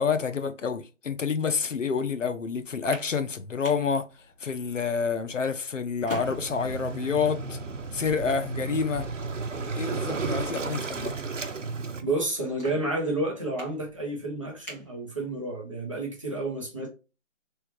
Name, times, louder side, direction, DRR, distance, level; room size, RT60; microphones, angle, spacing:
voice 1, 0.0-4.1 4.4-7.6 7.9-9.1 9.8-11.2, left 5 dB, 70° left, 0.8 m, -28 dB
sound 1, 2.6-15.7, left 2 dB, 10° left, 2.0 m, -47 dB
Waves surf, 6.2-12.0, right 4 dB, 70° right, 0.9 m, -33 dB
voice 2, 12.0-16.9, right 2 dB, 25° right, 1.0 m, -30 dB
4.4 x 3.4 x 3.1 m
figure-of-eight pair, 170°, 38 cm